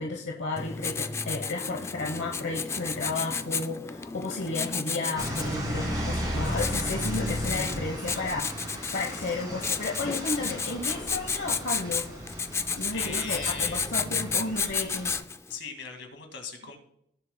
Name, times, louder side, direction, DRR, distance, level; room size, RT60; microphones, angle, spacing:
voice 1, 0.0-12.1 12.8-15.1, left 3 dB, 70° left, 1 dB, 1.0 m, -33 dB
Writing, 0.6-15.5, left 5 dB, 15° left, 0.3 m, -33 dB
sound 1, 5.2-15.2, equal, 20° right, 3.2 m, -35 dB
voice 2, 12.9-13.9 15.5-16.8, left 5 dB, 90° left, 5 dB, 2.1 m, -39 dB
18.0 x 7.3 x 2.2 m, 0.72 s
head